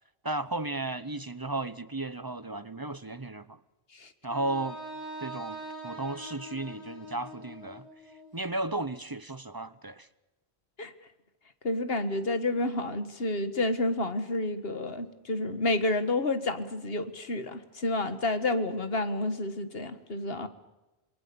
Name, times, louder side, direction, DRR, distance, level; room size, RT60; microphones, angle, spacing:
voice 1, 0.2-3.6 4.2-4.8 5.2-7.9 8.3-10.1, right 2 dB, 20° right, 0.8 m, -34 dB
Wind instrument woodwind instrument, 4.3-8.3, equal, 85° left, 8.2 m, -43 dB
voice 2, 11.6-20.5, left 2 dB, 60° left, 1.9 m, -30 dB
27.5 x 22.0 x 6.9 m
omnidirectional pair, 1.1 m